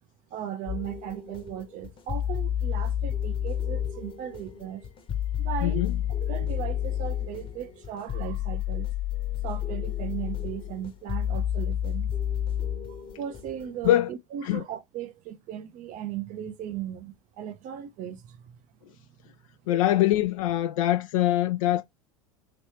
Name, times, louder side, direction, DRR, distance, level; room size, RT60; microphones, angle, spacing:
voice 1, 0.3-4.8 5.4-5.9 6.2-8.9 9.4-12.1 13.0-19.0 19.3-19.4, right 10 dB, 50° right, 0.7 m, -37 dB
sound 1, 0.7-13.9, left 10 dB, 30° left, 0.9 m, -30 dB
voice 2, 5.6-5.9 13.8-14.1 14.4-14.6 19.7-21.8, left 13 dB, 75° left, 0.4 m, -23 dB
3.1 x 3.1 x 2.9 m
hypercardioid pair, 85°, 18 cm